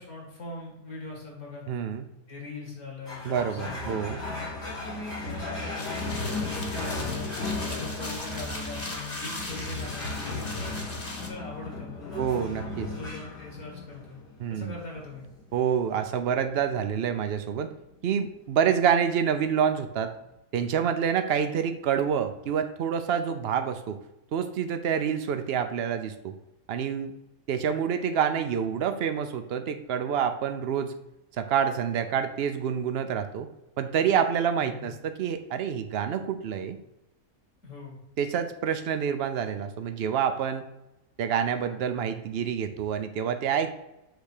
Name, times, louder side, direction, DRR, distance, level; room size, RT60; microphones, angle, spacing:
voice 1, 0.0-1.7 2.3-4.0 4.5-7.3 7.7-10.8 11.2-14.2 14.5-15.3 34.6-34.9 37.6-38.0, left 3 dB, 60° left, -2 dB, 2.8 m, -41 dB
voice 2, 1.7-2.0 3.2-4.2 12.1-12.9 14.4-14.7 15.5-17.7 18.0-20.1 20.5-24.0 24.3-26.3 26.7-27.1 27.5-30.9 31.4-33.5 33.8-36.8 38.2-40.6 41.2-43.8, right 8 dB, 85° right, 8 dB, 0.5 m, -27 dB
sound 1, 3.0-19.8, left 2 dB, 85° left, 3.5 m, -36 dB
sound 2, 5.7-11.3, left 2 dB, 30° left, 1.1 m, -39 dB
8.0 x 3.5 x 6.5 m, 0.92 s
omnidirectional pair, 1.7 m